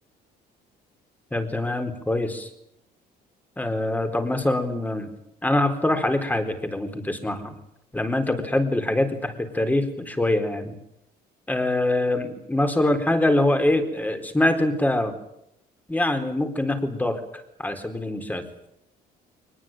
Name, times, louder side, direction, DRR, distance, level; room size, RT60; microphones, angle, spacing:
voice 1, 1.3-2.5 3.6-5.1 5.4-7.5 7.9-10.7 11.5-15.2 15.9-17.2 17.6-18.5, left 1 dB, 10° left, 7 dB, 4.1 m, -24 dB
23.0 x 20.5 x 9.1 m, 0.79 s
cardioid pair, 110°, 17 cm